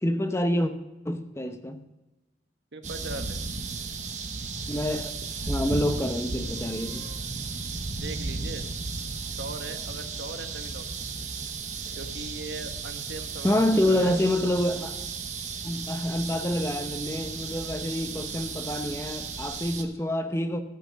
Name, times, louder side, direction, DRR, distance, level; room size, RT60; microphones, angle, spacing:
voice 1, 0.0-0.7 1.0-1.9 4.7-5.1 5.5-7.1 13.4-15.0 15.6-20.6, left 1 dB, 15° left, 8 dB, 0.7 m, -27 dB
voice 2, 2.7-3.4 7.4-8.7 9.3-11.3 12.0-14.2, right 2 dB, 75° right, 7 dB, 1.2 m, -40 dB
sound 1, 2.8-19.8, right 4 dB, 40° right, 1.1 m, -35 dB
14.0 x 5.8 x 6.4 m, 1.0 s
head